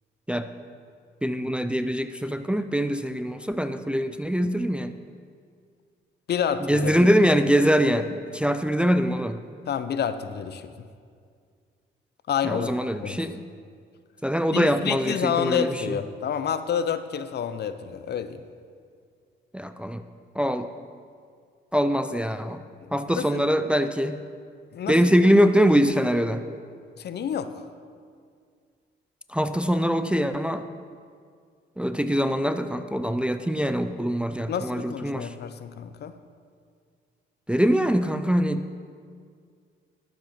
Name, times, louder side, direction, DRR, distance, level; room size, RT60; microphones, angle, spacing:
voice 1, 1.2-4.9 6.7-9.4 12.4-13.4 14.2-16.0 19.5-20.0 20.4-20.7 21.7-22.6 22.9-24.2 24.9-26.4 29.3-30.6 31.8-35.3 37.5-38.6, equal, 5° right, 10 dB, 0.4 m, -23 dB
voice 2, 6.3-6.9 9.7-10.7 12.3-13.3 14.5-18.4 23.1-23.5 24.7-25.0 27.0-27.6 34.5-36.1, left 8 dB, 55° left, 11 dB, 0.7 m, -29 dB
12.0 x 7.5 x 5.9 m, 2.1 s
cardioid pair, 90°, 20 cm